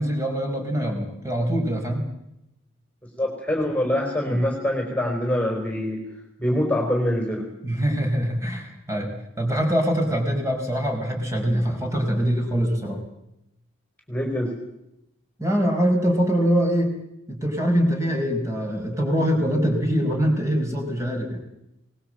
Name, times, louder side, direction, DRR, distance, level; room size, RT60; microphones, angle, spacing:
voice 1, 0.0-2.0 4.3-4.4 7.6-13.0 15.4-17.0 17.3-21.4, equal, 15° right, 2 dB, 4.8 m, -23 dB
voice 2, 3.2-6.0 6.4-7.5 14.1-14.5, left 1 dB, 5° left, 2 dB, 4.2 m, -24 dB
23.0 x 20.0 x 7.7 m, 0.85 s
head